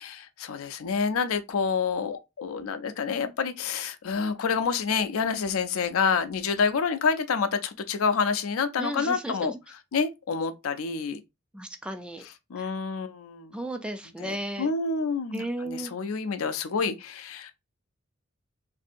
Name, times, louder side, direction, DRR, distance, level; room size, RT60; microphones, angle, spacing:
voice 1, 0.0-9.5 9.9-11.2 12.5-13.5 14.2-17.5, left 5 dB, 85° left, 0.5 m, -28 dB
voice 2, 8.8-9.6 11.5-12.2 12.6-12.7 13.5-14.7 15.3-15.9, right 1 dB, 5° right, 0.3 m, -34 dB
3.1 x 2.6 x 2.6 m
head